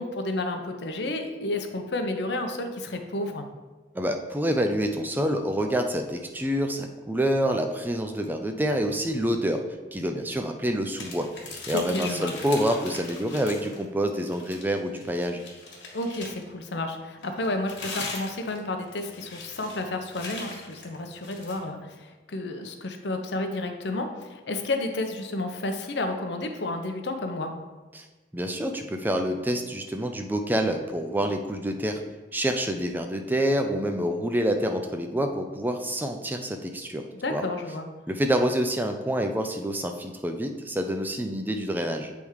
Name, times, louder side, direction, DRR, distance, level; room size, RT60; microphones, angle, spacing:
voice 1, 0.0-3.4 11.7-12.3 15.9-27.5 37.2-37.9, left 2 dB, 65° left, 5 dB, 0.7 m, -31 dB
voice 2, 3.9-9.6 9.9-11.3 11.7-15.4 27.9-28.1 28.3-32.0 32.3-37.0 37.3-37.4 38.1-42.1, equal, 10° right, 5 dB, 0.4 m, -27 dB
sound 1, 10.9-13.8 14.2-16.5 17.2-21.6, left 3 dB, 85° left, 1.5 m, -40 dB
7.2 x 3.5 x 4.7 m, 1.2 s
head